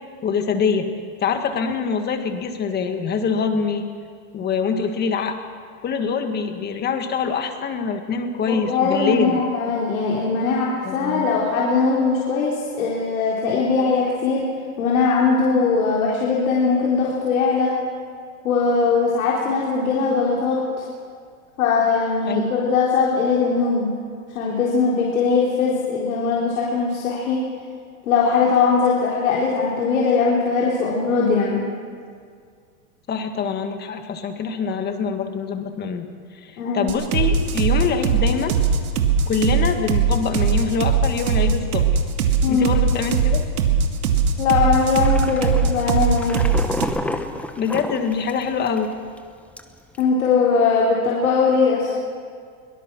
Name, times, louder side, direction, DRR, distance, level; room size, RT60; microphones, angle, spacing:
voice 1, 0.2-0.9 1.2-3.8 4.3-5.4 5.8-9.4 10.8-11.3 22.3-22.5 33.1-36.1 36.3-38.6 39.3-41.9 42.5-43.4 47.6-48.9, left 5 dB, 25° left, 6 dB, 1.8 m, -24 dB
voice 2, 8.5-14.4 14.8-17.7 18.4-20.8 21.6-23.9 24.3-27.4 28.0-31.7 36.6-36.9 42.4-42.7 44.4-46.4 50.0-51.9, left 4 dB, 75° left, -4 dB, 4.0 m, -20 dB
sound 1, 36.9-46.8, right 6 dB, 90° right, 2.4 m, -19 dB
sound 2, 45.0-48.8 49.2-49.3 49.6-50.0, left 1 dB, 5° left, 1.1 m, -30 dB
23.0 x 18.5 x 6.1 m, 2.1 s
supercardioid pair, 135°, 42 cm